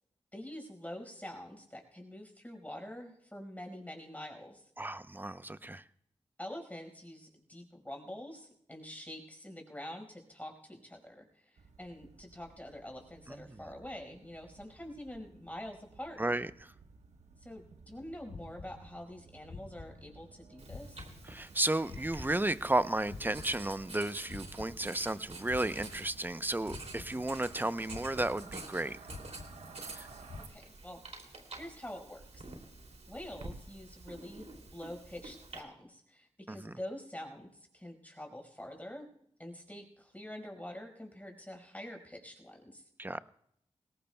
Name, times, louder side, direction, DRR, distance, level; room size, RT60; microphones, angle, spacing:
voice 1, 0.3-4.6 6.4-16.3 17.4-21.0 30.5-32.4 33.1-39.0 39.4-42.8, left 1 dB, 15° left, 3 dB, 5.0 m, -46 dB
voice 2, 4.8-5.8 13.3-13.6 16.2-16.7 21.2-29.0 30.0-30.1 36.5-36.7 43.0-43.2, right 1 dB, 15° right, 14 dB, 0.7 m, -33 dB
sound 1, 11.6-30.5, right 4 dB, 90° right, 1.2 m, -56 dB
sound 2, 18.3-19.2 19.5-20.4 20.7-22.8 23.1-25.2 25.5-26.4 26.7-27.6 27.9-28.8 29.1-30.0 30.3-30.5, left 3 dB, 85° left, 1.7 m, -49 dB
Writing, 20.6-35.6, right 2 dB, 70° right, 2.8 m, -49 dB
21.5 x 18.0 x 2.3 m, 0.71 s
cardioid pair, 45°, 11 cm